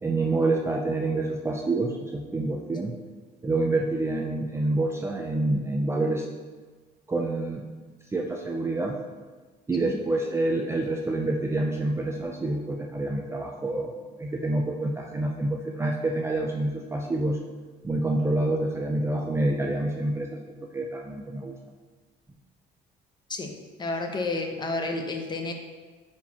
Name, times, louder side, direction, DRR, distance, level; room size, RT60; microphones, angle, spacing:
voice 1, 0.0-2.9 3.4-6.3 7.1-7.6 8.1-9.0 9.7-17.4 17.8-21.5, right 2 dB, 15° right, 0 dB, 0.5 m, -27 dB
voice 2, 23.8-25.5, left 2 dB, 25° left, 3 dB, 0.8 m, -30 dB
8.9 x 4.4 x 2.9 m, 1.4 s
cardioid pair, 110°, 17 cm